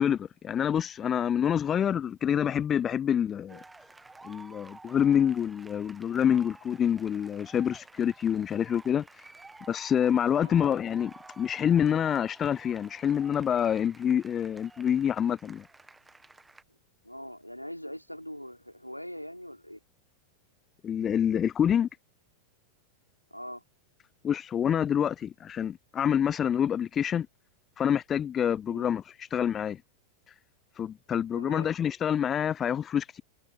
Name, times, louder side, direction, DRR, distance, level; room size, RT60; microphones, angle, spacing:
voice 1, 0.0-3.6 4.2-9.3 9.7-15.6 20.8-21.9 24.2-27.3 27.8-29.8 30.8-33.2, left 9 dB, 25° left, 0.4 m, -27 dB
sound 1, 3.5-16.6, right 3 dB, 10° right, 1.7 m, -52 dB
voice 2, 10.4-10.7 17.0-19.8 23.3-23.6 28.7-28.9 31.3-31.7, equal, 90° left, 3.5 m, -42 dB
figure-of-eight pair, 90°, 0 cm